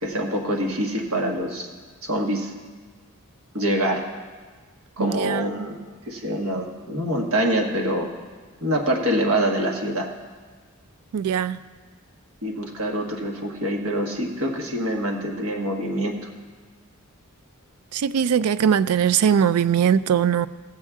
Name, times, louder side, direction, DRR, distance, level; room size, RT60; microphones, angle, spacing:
voice 1, 0.0-1.7 2.0-2.5 3.5-4.0 5.0-8.1 8.6-10.1 12.4-16.2, right 1 dB, 65° right, 1 dB, 1.4 m, -25 dB
voice 2, 5.0-5.7 11.1-11.6 17.9-20.5, right 8 dB, 85° right, 17 dB, 0.3 m, -21 dB
16.5 x 7.5 x 3.6 m, 1.5 s
head